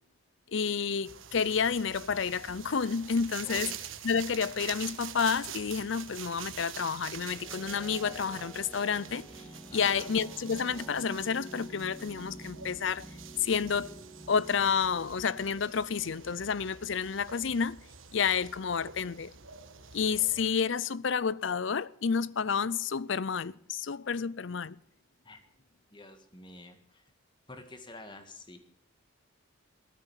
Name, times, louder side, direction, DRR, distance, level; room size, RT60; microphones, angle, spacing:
voice 1, 0.5-3.7 4.0-9.3 9.7-13.1 13.4-14.0 14.3-17.8 18.1-19.3 19.9-24.8, left 6 dB, 65° left, 0.6 m, -30 dB
sound 1, 1.0-20.5, right 8 dB, 75° right, 1.4 m, -46 dB
voice 2, 3.4-3.8 9.7-10.1 25.2-25.4 25.9-27.0 27.5-28.6, left 2 dB, 25° left, 1.9 m, -49 dB
sound 2, 6.7-17.5, right 1 dB, 5° left, 2.1 m, -49 dB
15.0 x 13.0 x 7.2 m
head